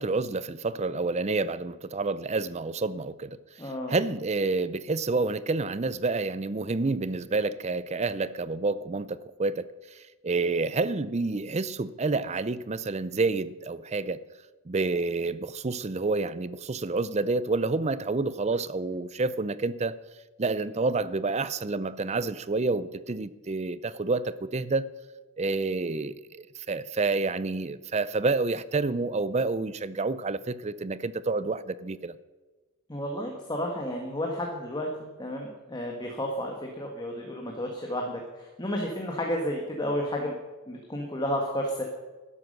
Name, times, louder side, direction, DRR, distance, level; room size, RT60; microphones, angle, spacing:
voice 1, 0.0-3.4 3.6-9.6 9.9-14.2 14.7-20.0 20.4-24.9 25.4-32.2, right 3 dB, 30° right, 0.5 m, -29 dB
voice 2, 3.6-3.9 32.9-40.3 40.7-41.8, equal, 20° left, 1.4 m, -32 dB
13.0 x 10.5 x 6.5 m
head